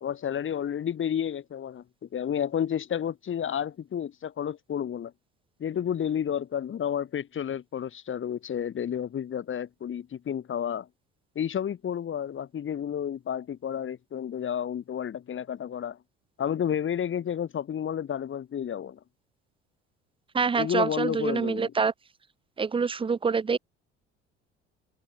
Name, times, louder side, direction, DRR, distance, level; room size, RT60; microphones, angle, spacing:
voice 1, 0.0-5.1 5.6-10.9 11.4-16.0 16.4-19.0 20.6-21.7, left 9 dB, 40° left, 1.7 m, -31 dB
voice 2, 20.3-21.9 22.6-23.6, right 5 dB, 15° right, 0.6 m, -26 dB
figure-of-eight pair, 55°, 33 cm